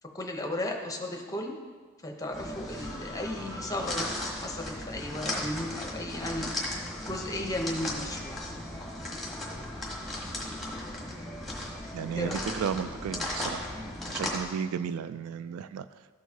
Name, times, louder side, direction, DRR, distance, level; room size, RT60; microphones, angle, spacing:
voice 1, 0.1-1.6 2.0-6.5 7.0-8.4 12.2-12.4, left 1 dB, 15° left, 2 dB, 0.7 m, -35 dB
sound 1, 2.3-14.4, left 1 dB, ahead, 1.2 m, -36 dB
voice 2, 11.9-13.7 14.1-16.1, right 7 dB, 75° right, 14 dB, 0.3 m, -34 dB
13.0 x 4.6 x 2.8 m, 1.4 s
head